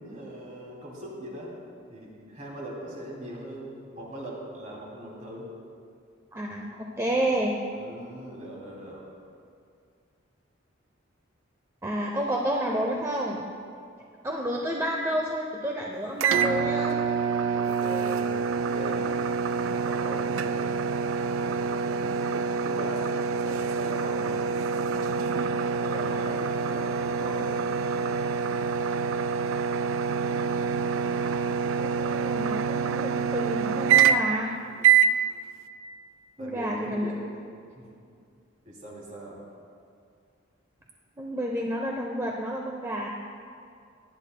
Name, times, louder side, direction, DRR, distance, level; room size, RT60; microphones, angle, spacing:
voice 1, 0.0-1.6 1.9-5.5 7.1-7.3 7.7-9.0 14.6-14.7 17.5-19.2 19.7-20.9 21.4-22.1 22.6-23.2 23.4-24.4 25.8-27.5 36.4-37.2 37.8-38.0 38.6-39.4, right 1 dB, 40° right, -3 dB, 2.7 m, -40 dB
voice 2, 6.3-7.6 11.8-13.5 14.2-17.0 31.8-34.6 36.4-37.1 41.2-43.1, equal, 15° right, -1 dB, 0.6 m, -30 dB
sound 1, 16.2-34.4 34.8-35.2, right 6 dB, 80° right, 0.4 m, -26 dB
18.0 x 11.0 x 2.2 m, 2.3 s
head